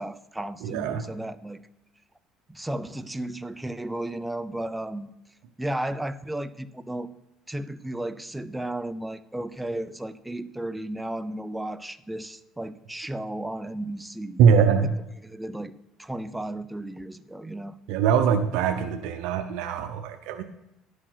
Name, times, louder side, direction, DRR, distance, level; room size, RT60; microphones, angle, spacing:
voice 1, 0.0-1.6 2.5-5.1 5.6-7.1 7.5-14.4 14.8-14.9 15.2-15.7 16.0-17.8, right 1 dB, 5° right, 13 dB, 0.5 m, -34 dB
voice 2, 0.6-1.0 14.4-14.9 17.9-20.4, right 7 dB, 80° right, 7 dB, 0.6 m, -22 dB
11.0 x 5.0 x 5.7 m, 0.89 s
cardioid pair, 105°, 0 cm